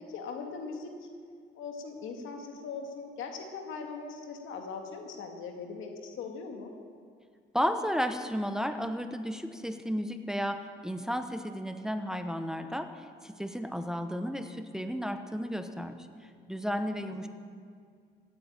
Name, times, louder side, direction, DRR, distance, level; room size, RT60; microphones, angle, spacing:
voice 1, 0.1-1.1 1.5-6.7 16.9-17.2, left 5 dB, 85° left, 3 dB, 2.1 m, -40 dB
voice 2, 7.5-16.1 16.5-17.3, equal, 5° right, 7 dB, 1.0 m, -33 dB
16.0 x 9.4 x 8.8 m, 2.1 s
cardioid pair, 90°, 20 cm